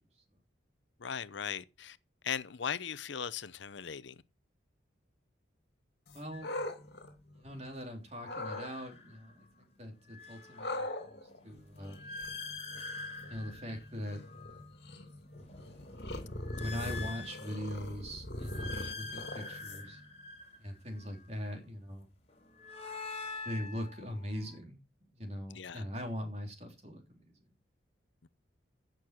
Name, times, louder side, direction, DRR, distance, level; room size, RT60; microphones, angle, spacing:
voice 1, 1.0-2.0 2.2-4.2 18.7-19.0 25.5-25.9 28.2-28.3, left 7 dB, 75° left, 0.7 m, -39 dB
sound 1, 6.1-7.8 8.2-8.7 10.6-20.1, left 1 dB, 60° left, 2.7 m, -42 dB
voice 2, 6.1-6.5 7.3-12.0 13.2-14.2 16.5-20.0 20.6-22.1 23.4-24.8 25.1-27.4, equal, 35° right, 3.4 m, -41 dB
sound 2, 6.3-6.6 8.2-9.4 9.9-14.7 15.2-17.9 18.3-21.3 22.3-24.6, left 3 dB, 35° left, 3.7 m, -46 dB
15.0 x 6.7 x 6.0 m
head